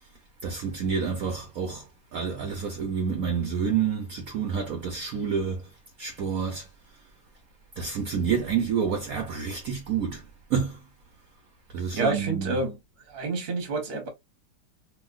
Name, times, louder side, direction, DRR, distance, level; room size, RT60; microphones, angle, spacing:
voice 1, 0.4-5.7 6.0-6.7 7.8-10.8 11.7-12.5, right 6 dB, 60° right, 1.1 m, -28 dB
voice 2, 11.9-12.7 13.1-14.1, right 3 dB, 40° right, 1.1 m, -28 dB
3.0 x 2.8 x 2.4 m
omnidirectional pair, 2.0 m